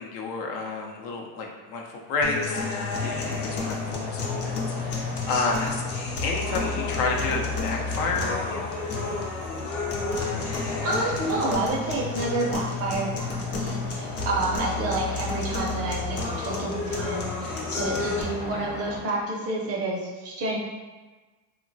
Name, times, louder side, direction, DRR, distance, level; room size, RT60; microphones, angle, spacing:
voice 1, 0.0-5.8 6.2-8.8, left 3 dB, 75° left, 0 dB, 0.7 m, -30 dB
sound 1, 2.2-18.2, left 4 dB, 35° left, 0.5 m, -31 dB
sound 2, 2.9-19.0, left 2 dB, 50° left, 1.1 m, -37 dB
voice 2, 10.8-20.6, right 2 dB, 35° right, -2 dB, 0.5 m, -29 dB
2.9 x 2.2 x 2.6 m, 1.3 s
supercardioid pair, 120°, 45 cm